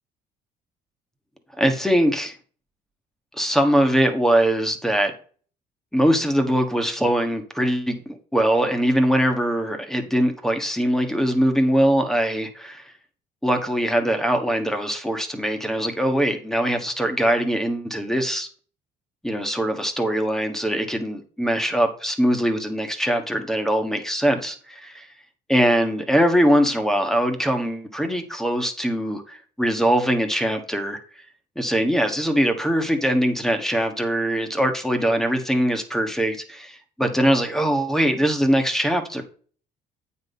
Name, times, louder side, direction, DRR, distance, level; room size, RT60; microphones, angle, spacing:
voice 1, 1.6-2.3 3.4-5.1 5.9-12.9 13.4-18.5 19.2-25.1 25.5-31.0 31.6-39.2, equal, ahead, 5 dB, 1.3 m, -22 dB
8.8 x 4.2 x 5.4 m, 0.42 s
cardioid pair, 110°, 17 cm